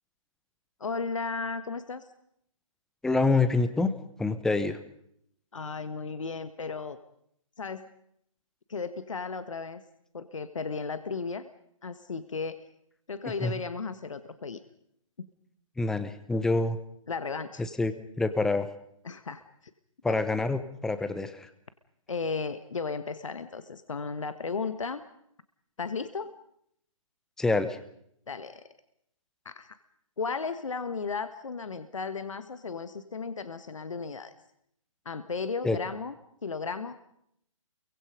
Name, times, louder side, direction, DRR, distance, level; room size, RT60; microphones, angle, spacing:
voice 1, 0.8-2.0 5.5-7.0 7.6-7.9 8.7-9.8 10.1-11.5 11.8-12.6 13.1-14.6 15.2-15.3 17.1-17.6 19.0-19.5 20.1-20.2 22.1-25.0 25.8-26.3 28.3-28.6 29.4-29.8 30.2-34.3 35.0-36.1 36.4-37.0, left 4 dB, 65° left, 11 dB, 1.6 m, -35 dB
voice 2, 3.0-3.9 4.2-4.8 13.4-13.5 15.8-16.8 17.6-18.7 20.0-21.5 27.4-27.8 35.6-35.8, left 3 dB, 5° left, 11 dB, 1.0 m, -26 dB
28.5 x 23.5 x 5.2 m, 0.72 s
figure-of-eight pair, 140°, 17 cm